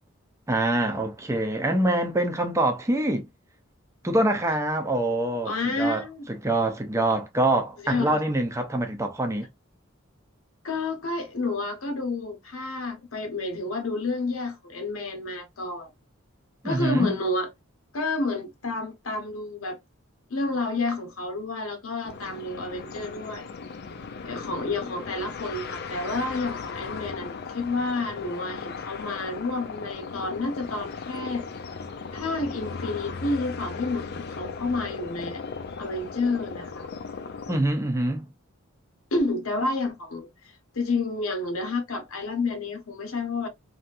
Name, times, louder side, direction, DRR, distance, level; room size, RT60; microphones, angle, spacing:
voice 1, 0.5-3.3 4.0-6.0 6.3-9.5 16.6-17.2 37.5-38.3, right 1 dB, 15° right, 0.6 m, -25 dB
voice 2, 5.4-6.3 7.8-8.2 10.6-15.9 16.6-17.5 17.9-19.8 20.3-23.5 24.2-31.4 32.1-35.4 35.8-36.9 39.1-43.5, left 3 dB, 85° left, 0.9 m, -30 dB
sound 1, 22.0-37.6, left 5 dB, 50° left, 0.4 m, -37 dB
3.1 x 2.7 x 2.4 m
head